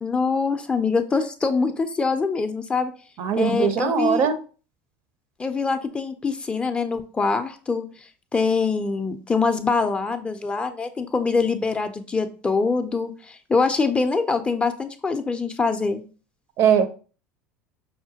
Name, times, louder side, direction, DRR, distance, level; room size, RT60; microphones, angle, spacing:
voice 1, 0.0-2.9 3.4-4.3 5.4-16.0, left 4 dB, 15° left, 0.4 m, -24 dB
voice 2, 3.2-4.3 16.6-16.9, right 7 dB, 50° right, 0.5 m, -20 dB
5.5 x 2.1 x 2.7 m
supercardioid pair, 110°, 6 cm